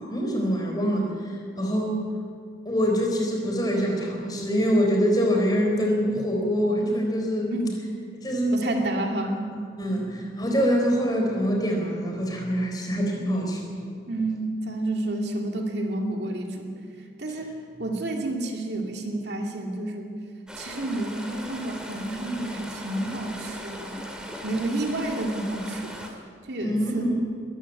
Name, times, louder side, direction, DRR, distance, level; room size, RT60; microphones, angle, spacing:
voice 1, 0.0-2.1 2.6-7.5 8.2-8.8 9.8-13.7 26.6-27.2, equal, 20° left, 0 dB, 4.2 m, -25 dB
voice 2, 8.5-9.4 9.9-10.1 14.1-16.7 17.2-17.5 17.8-20.2 20.5-24.1 24.4-25.9 26.5-27.0, right 1 dB, 65° right, 2 dB, 2.5 m, -30 dB
sound 1, 20.5-26.1, equal, 5° right, 2.3 m, -39 dB
21.5 x 14.0 x 9.2 m, 2.2 s
head